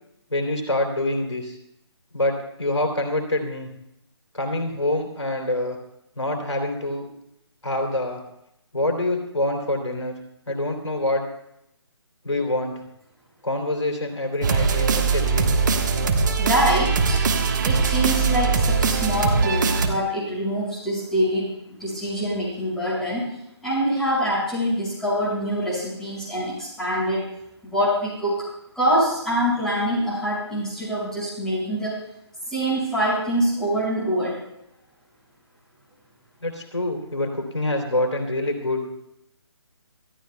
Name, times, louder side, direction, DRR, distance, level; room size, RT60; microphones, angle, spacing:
voice 1, 0.3-1.6 2.1-3.7 4.3-5.8 6.2-7.1 7.6-8.2 8.7-10.1 10.5-11.3 12.2-12.8 13.4-15.5 36.4-38.9, left 1 dB, 80° left, 3 dB, 3.2 m, -26 dB
sound 1, 14.4-19.9, right 5 dB, 40° right, 1.4 m, -21 dB
voice 2, 16.4-17.2 17.6-23.3 23.6-27.3 27.6-28.5 28.7-32.0 32.5-34.4, equal, 5° left, -9 dB, 6.0 m, -25 dB
26.5 x 14.5 x 2.3 m, 0.80 s
figure-of-eight pair, 145°, 15 cm